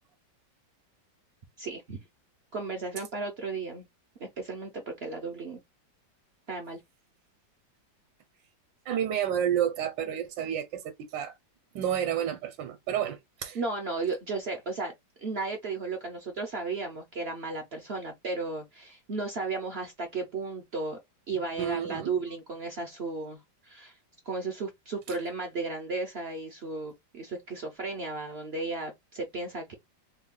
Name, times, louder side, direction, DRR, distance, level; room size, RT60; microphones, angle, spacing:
voice 1, 1.6-2.0 2.5-3.9 4.2-5.6 6.5-6.8 13.5-14.9 15.2-21.0 21.3-23.4 23.6-24.0 24.3-29.7, right 3 dB, 65° right, 0.6 m, -34 dB
voice 2, 8.9-11.4 11.7-13.6 21.6-22.1 25.1-25.2, right 10 dB, 80° right, 1.3 m, -30 dB
3.3 x 2.3 x 3.6 m
omnidirectional pair, 2.0 m